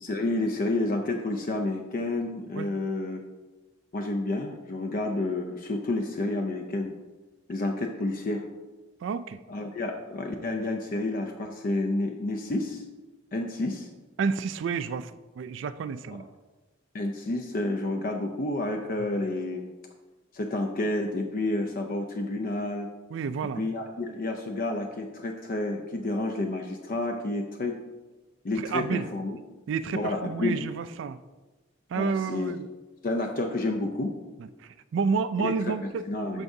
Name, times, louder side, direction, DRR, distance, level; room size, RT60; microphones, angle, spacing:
voice 1, 0.0-3.2 3.9-6.9 7.5-8.4 9.5-12.8 13.3-13.9 16.9-19.7 20.3-22.9 23.6-27.8 28.4-29.4 29.9-30.6 31.9-32.5 33.0-34.1 35.4-36.4, left 2 dB, 45° left, 4 dB, 0.5 m, -30 dB
voice 2, 9.0-9.4 14.2-16.3 23.1-23.7 28.6-29.1 29.7-31.2 31.9-32.7 34.6-36.1 36.3-36.4, right 5 dB, 65° right, 14 dB, 0.3 m, -30 dB
12.5 x 4.7 x 2.7 m, 1.2 s
head